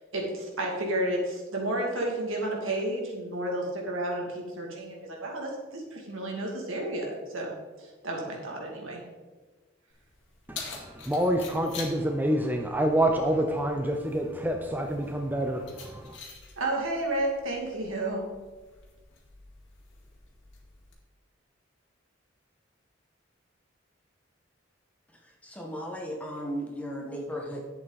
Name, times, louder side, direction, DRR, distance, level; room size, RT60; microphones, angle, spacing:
voice 1, 0.0-9.0 16.6-18.3, right 1 dB, 80° right, -1 dB, 2.5 m, -31 dB
Keys jangling, 9.9-20.9, left 5 dB, 65° left, 2.2 m, -47 dB
voice 2, 10.5-16.2, right 1 dB, 10° right, 3 dB, 0.6 m, -27 dB
voice 3, 25.1-27.6, equal, 5° left, -1 dB, 1.5 m, -36 dB
11.0 x 8.0 x 4.1 m, 1.3 s
head